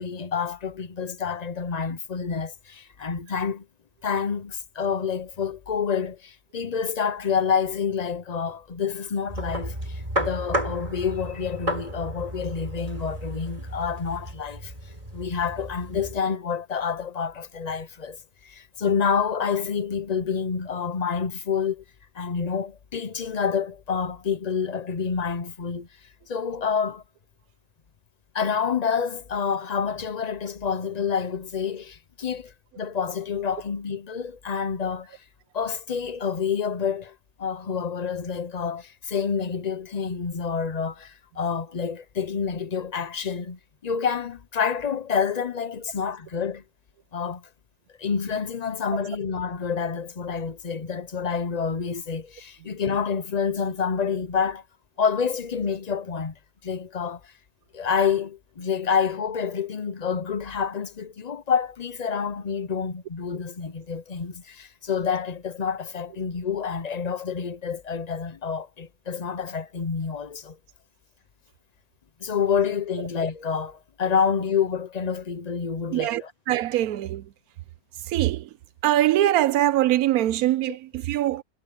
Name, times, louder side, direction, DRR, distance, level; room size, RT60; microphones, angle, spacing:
voice 1, 0.0-3.7 4.0-14.7 15.1-21.8 22.1-25.9 26.3-27.0 28.3-35.2 35.5-46.6 47.1-47.4 48.0-54.6 55.0-56.3 56.6-57.3 57.7-70.6 72.2-76.3, left 6 dB, 55° left, 0.4 m, -28 dB
sound 1, 9.3-16.2, equal, 20° right, 5.5 m, -33 dB
voice 2, 75.9-77.2 78.1-78.5 78.8-81.4, right 14 dB, 70° right, 1.0 m, -23 dB
omnidirectional pair, 1.7 m